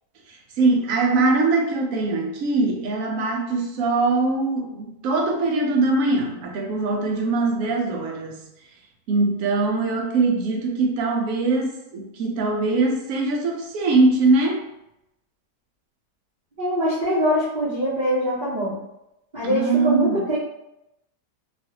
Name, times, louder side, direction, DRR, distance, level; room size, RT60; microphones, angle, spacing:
voice 1, 0.3-8.4 9.1-14.6 19.4-20.2, right 3 dB, 65° right, 0 dB, 0.8 m, -22 dB
voice 2, 16.6-18.8 19.3-20.4, equal, 35° right, -11 dB, 0.7 m, -23 dB
3.1 x 2.4 x 2.8 m, 0.87 s
omnidirectional pair, 1.9 m